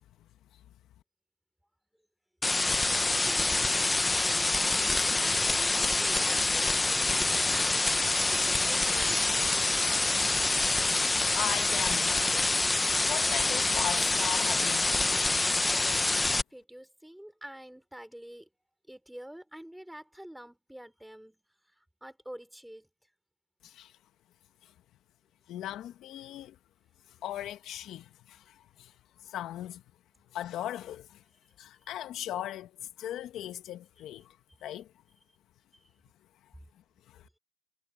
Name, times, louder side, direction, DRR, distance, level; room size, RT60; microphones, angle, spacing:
sound 1, 2.4-16.4, left 2 dB, 10° left, 0.7 m, -26 dB
voice 1, 3.2-3.9 4.2-7.9 8.2-9.4 15.8-18.5 18.9-22.9 31.8-31.9 34.0-34.1 34.7-34.8 35.7-35.9 37.2-37.3, right 1 dB, 5° right, 3.4 m, -48 dB
voice 2, 11.3-12.5 13.0-14.9 23.6-23.9 25.5-26.5 27.2-28.9 29.2-29.8 30.3-31.2 31.6-34.4 34.6-34.9 37.1-37.2, left 12 dB, 55° left, 1.3 m, -38 dB
supercardioid pair, 110°, 0 cm